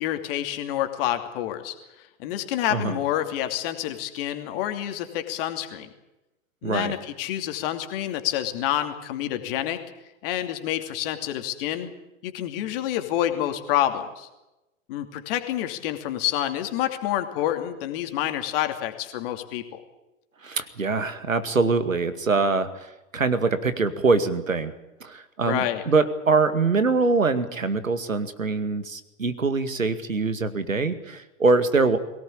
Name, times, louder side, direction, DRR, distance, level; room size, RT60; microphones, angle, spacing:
voice 1, 0.0-5.9 6.6-9.8 10.2-11.9 12.2-14.3 14.9-19.8 25.5-25.8, left 12 dB, 45° left, 7 dB, 2.8 m, -28 dB
voice 2, 6.6-6.9 20.4-24.7 25.0-32.0, right 4 dB, 80° right, 11 dB, 2.2 m, -23 dB
22.5 x 18.0 x 8.7 m, 0.98 s
figure-of-eight pair, 100°, 39 cm